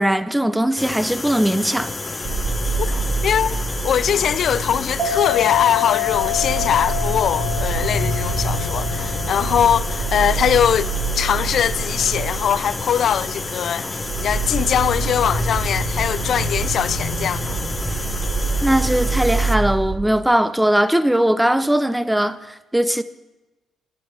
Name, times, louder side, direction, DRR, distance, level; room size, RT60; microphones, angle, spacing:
voice 1, 0.0-1.9 18.6-23.0, right 1 dB, 5° right, 0.7 m, -19 dB
sound 1, 0.8-19.6, left 3 dB, 25° left, 1.0 m, -30 dB
sound 2, 2.2-20.0, right 3 dB, 60° right, 2.6 m, -26 dB
voice 2, 3.2-3.6 3.8-10.9 11.2-17.6, left 9 dB, 65° left, 0.4 m, -21 dB
sound 3, 5.0-12.0, left 11 dB, 40° right, 2.2 m, -28 dB
11.5 x 11.0 x 7.1 m
cardioid pair, 90°, 0 cm